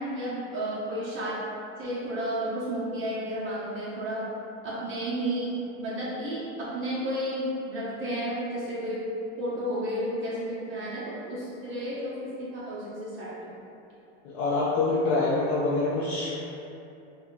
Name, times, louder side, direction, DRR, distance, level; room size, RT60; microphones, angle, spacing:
voice 1, 0.0-1.4 1.8-4.2 4.6-9.0 9.4-13.5, right 1 dB, 35° right, -9 dB, 0.8 m, -32 dB
voice 2, 14.2-16.4, left 3 dB, 50° left, -7 dB, 0.6 m, -26 dB
2.8 x 2.3 x 3.7 m, 2.8 s
supercardioid pair, 115°, 36 cm